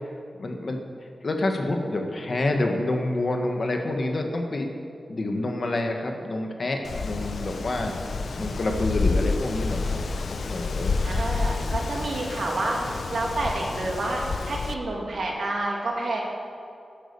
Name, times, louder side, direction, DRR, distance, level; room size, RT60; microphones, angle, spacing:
voice 1, 0.4-0.8 1.2-4.7 5.1-7.9 8.3-10.0 10.3-11.0, left 2 dB, 55° left, 3 dB, 1.6 m, -27 dB
Wind, 6.8-14.7, left 3 dB, 75° left, 0.6 m, -29 dB
voice 2, 10.8-16.2, right 2 dB, 75° right, -2 dB, 2.6 m, -29 dB
12.5 x 8.6 x 7.0 m, 2.6 s
wide cardioid pair, 70°, 0 cm